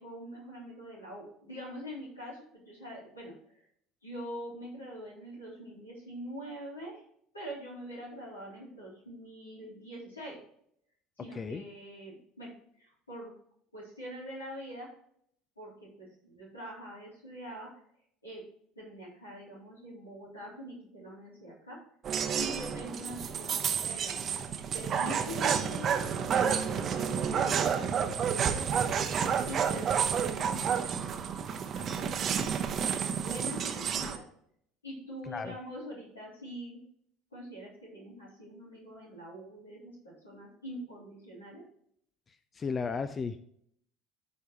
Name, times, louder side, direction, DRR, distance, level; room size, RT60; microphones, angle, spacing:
voice 1, 0.0-3.6 4.0-7.0 7.3-10.4 11.2-12.5 12.8-13.3 13.7-14.9 15.6-17.7 18.2-18.4 18.8-21.8 22.4-29.1 29.5-31.2 31.7-34.2 34.8-36.8 37.3-39.8 40.0-41.7, equal, 80° left, -6 dB, 3.4 m, -44 dB
voice 2, 11.3-11.6 35.2-35.6 42.5-43.5, left 5 dB, 30° left, 12 dB, 0.5 m, -35 dB
sound 1, 22.0-34.2, right 7 dB, 40° right, 0.8 m, -30 dB
13.5 x 4.6 x 3.0 m, 0.68 s
figure-of-eight pair, 65°, 0 cm